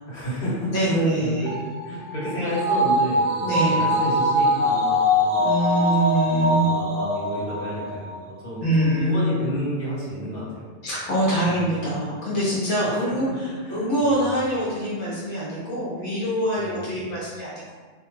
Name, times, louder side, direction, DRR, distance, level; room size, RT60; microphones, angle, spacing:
voice 1, 0.1-1.5 1.8-5.5 6.2-8.1 8.4-10.7 11.5-11.8 12.8-13.3 13.7-14.2 16.6-17.0, equal, 50° left, -9 dB, 1.1 m, -31 dB
voice 2, 0.7-1.6 3.4-3.9 5.4-6.7 8.6-9.2 10.8-17.7, right 1 dB, 80° left, -8 dB, 1.1 m, -24 dB
sound 1, 1.5-8.1 8.5-8.6, left 1 dB, 60° right, 0.6 m, -23 dB
2.5 x 2.2 x 3.1 m, 1.4 s
omnidirectional pair, 1.2 m